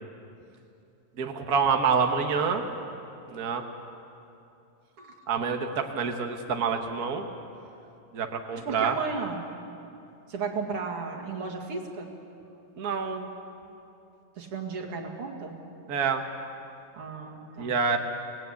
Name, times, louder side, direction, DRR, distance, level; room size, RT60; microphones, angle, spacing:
voice 1, 1.2-2.6 3.3-3.6 5.3-7.2 8.1-9.0 12.8-13.3 15.9-16.2 17.6-18.0, right 5 dB, 75° right, 4 dB, 0.8 m, -27 dB
voice 2, 8.5-9.5 10.3-12.1 14.4-15.6 16.9-17.8, right 4 dB, 45° right, 1 dB, 2.8 m, -34 dB
26.0 x 19.0 x 8.4 m, 2.7 s
omnidirectional pair, 3.8 m